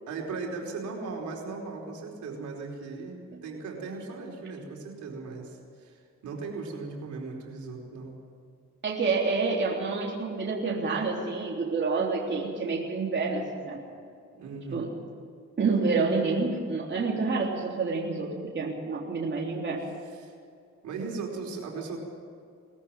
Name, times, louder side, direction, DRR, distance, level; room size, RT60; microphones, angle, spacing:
voice 1, 0.1-8.2 14.3-14.8 20.1-20.4 20.8-22.0, right 4 dB, 70° right, 0 dB, 4.8 m, -38 dB
voice 2, 8.8-13.8 14.7-14.9 15.6-19.9, right 4 dB, 40° right, -2 dB, 3.5 m, -28 dB
21.0 x 14.5 x 9.1 m, 2.3 s
cardioid pair, 90°, 30 cm